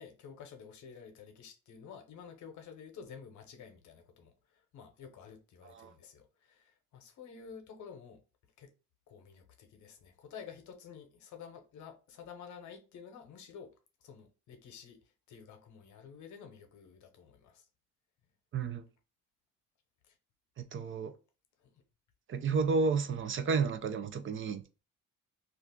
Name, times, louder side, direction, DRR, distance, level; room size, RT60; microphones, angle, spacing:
voice 1, 0.0-8.2 8.6-8.7 9.1-13.7 14.0-15.0 15.3-17.7 20.0-20.2 21.6-21.8, left 6 dB, 70° left, 0.8 m, -51 dB
voice 2, 18.5-18.8 20.6-21.1 22.3-24.8, right 4 dB, 40° right, 0.4 m, -32 dB
2.4 x 2.4 x 3.5 m
cardioid pair, 90°, 30 cm